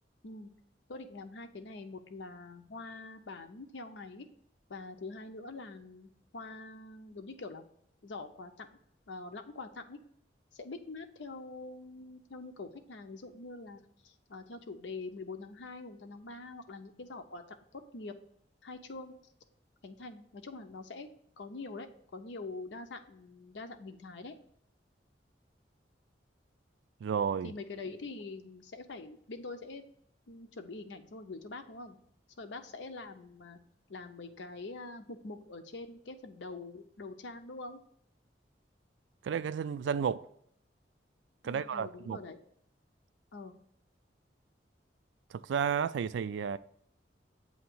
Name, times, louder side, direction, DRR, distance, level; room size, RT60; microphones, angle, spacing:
voice 1, 0.2-0.5 0.9-4.3 4.7-7.6 8.0-8.7 9.1-10.0 10.5-17.4 17.7-18.1 18.6-19.2 19.8-21.1 21.4-21.9 22.1-24.3 27.4-29.8 30.3-32.0 32.4-33.6 33.9-37.8 41.4-42.4 43.3-43.5, left 3 dB, 80° left, 0.6 m, -44 dB
voice 2, 27.0-27.5 39.2-40.3 41.4-42.2 45.3-46.6, right 7 dB, 85° right, 0.3 m, -32 dB
7.7 x 2.8 x 6.0 m
head